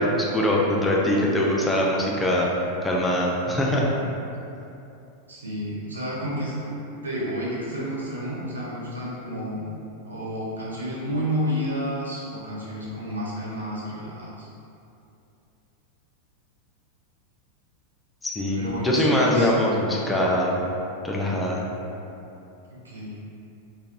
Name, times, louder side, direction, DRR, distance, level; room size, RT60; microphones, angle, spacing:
voice 1, 0.0-2.5 2.8-4.2 18.2-20.6 21.0-21.6, left 1 dB, 10° left, -3 dB, 0.3 m, -23 dB
voice 2, 5.3-6.7 7.0-9.7 10.0-14.5 18.5-19.5 22.7-23.2, equal, 75° right, -7 dB, 0.6 m, -30 dB
2.8 x 2.1 x 2.5 m, 2.7 s
figure-of-eight pair, 90°, 0 cm